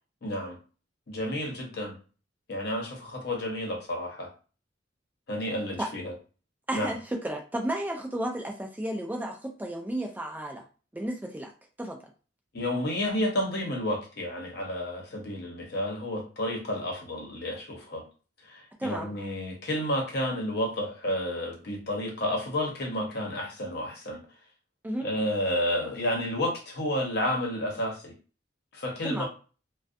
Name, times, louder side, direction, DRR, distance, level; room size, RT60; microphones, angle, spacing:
voice 1, 0.2-0.6 1.1-1.9 2.5-4.3 5.3-6.1 6.7-6.9 12.5-18.0 18.5-24.2 25.0-28.1 28.7-29.3, left 1 dB, 60° left, 1 dB, 0.8 m, -31 dB
voice 2, 6.7-10.6 10.9-11.5 11.8-12.0 18.8-19.1 24.8-25.1 29.0-29.3, right 1 dB, 10° right, 2 dB, 0.3 m, -32 dB
2.5 x 2.2 x 2.5 m, 0.36 s
head